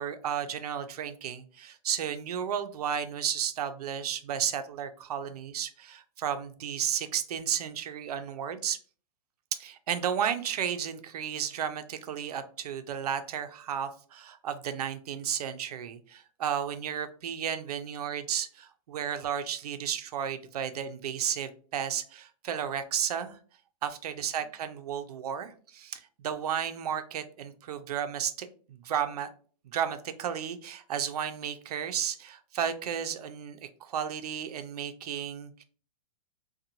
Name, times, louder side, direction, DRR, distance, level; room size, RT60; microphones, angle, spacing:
voice 1, 0.0-8.8 9.6-23.4 23.8-29.3 29.7-35.6, right 8 dB, 85° right, 10 dB, 0.4 m, -33 dB
2.6 x 2.2 x 2.8 m, 0.43 s
hypercardioid pair, 175°, 19 cm